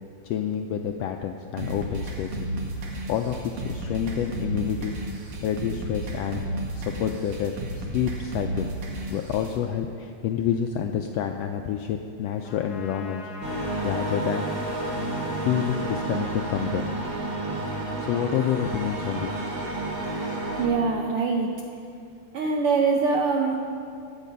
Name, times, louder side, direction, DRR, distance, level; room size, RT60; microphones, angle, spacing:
voice 1, 0.2-2.5 2.8-4.9 5.3-6.4 6.7-8.7 9.1-13.3 13.6-14.5 15.4-16.9 18.0-19.4, left 9 dB, 85° left, 5 dB, 1.4 m, -28 dB
sound 1, 1.6-9.6, right 1 dB, 60° right, 2.4 m, -33 dB
Trumpet, 12.4-17.7, left 4 dB, 60° left, 1.0 m, -43 dB
sound 2, 13.4-20.7, right 2 dB, 40° right, 3.1 m, -30 dB
voice 2, 20.6-21.5 22.3-23.7, right 4 dB, 75° right, 2 dB, 1.3 m, -23 dB
16.0 x 9.9 x 5.3 m, 2.4 s
omnidirectional pair, 3.4 m